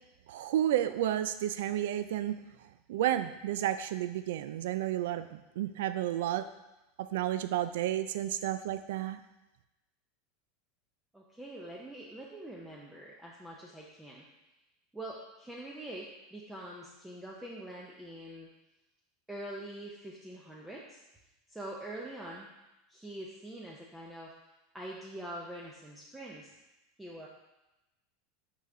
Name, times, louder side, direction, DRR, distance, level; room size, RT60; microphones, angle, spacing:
voice 1, 0.3-2.4 2.9-6.5 7.0-9.2, right 12 dB, 80° right, 12 dB, 0.4 m, -31 dB
voice 2, 11.1-14.2 14.9-18.5 19.3-21.0 21.5-22.5 22.9-24.3 24.7-26.5 27.0-27.3, right 1 dB, 5° right, -4 dB, 0.6 m, -44 dB
5.5 x 4.9 x 3.8 m, 0.98 s
supercardioid pair, 160°, 0 cm